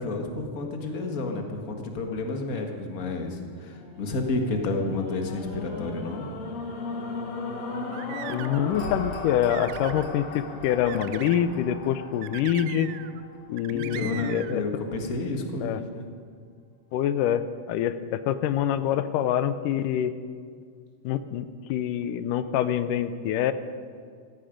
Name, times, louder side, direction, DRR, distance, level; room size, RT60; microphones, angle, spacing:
voice 1, 0.0-6.3 13.7-16.1, left 2 dB, 40° left, 3 dB, 1.3 m, -30 dB
sound 1, 3.7-14.0 14.5-14.6, left 3 dB, 60° left, 2.6 m, -37 dB
sound 2, 7.7-8.7 9.2-10.1 10.9-11.4 12.2-13.2 13.6-14.6, right 13 dB, 80° right, 1.6 m, -40 dB
voice 2, 8.3-12.9 13.5-14.6 15.6-15.8 16.9-20.1 21.0-23.5, left 10 dB, 80° left, 12 dB, 2.2 m, -26 dB
16.5 x 14.5 x 5.2 m, 2.1 s
omnidirectional pair, 3.8 m